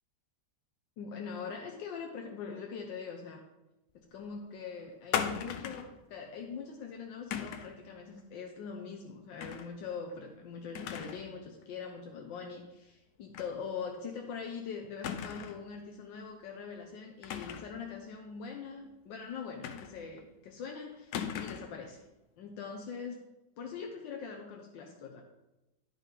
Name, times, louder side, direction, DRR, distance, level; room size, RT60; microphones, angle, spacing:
voice 1, 1.0-3.4 3.9-22.0 22.4-23.2 23.6-25.2, left 5 dB, 85° left, 1 dB, 1.5 m, -42 dB
sound 1, 5.1-5.9 7.3-7.8 9.4-9.7 10.1-10.2 10.7-11.3 11.6-11.7 13.3-13.5 13.9-14.0 15.0-15.7 17.2-17.8 19.6-20.2 21.1-21.8, left 8 dB, 70° left, 1.1 m, -37 dB
10.5 x 5.4 x 3.8 m, 0.99 s
omnidirectional pair, 1.9 m